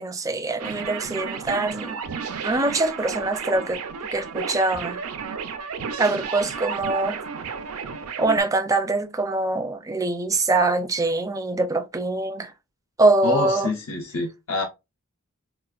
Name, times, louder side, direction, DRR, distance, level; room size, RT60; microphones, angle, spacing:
voice 1, 0.0-2.0 2.4-3.8 4.1-5.0 6.0-7.2 8.2-12.5 13.0-13.7, right 2 dB, 15° right, 0.4 m, -23 dB
sound 1, 0.6-8.4, right 6 dB, 80° right, 0.5 m, -32 dB
voice 2, 13.2-14.6, left 2 dB, 75° left, 0.7 m, -26 dB
4.0 x 2.4 x 2.4 m
head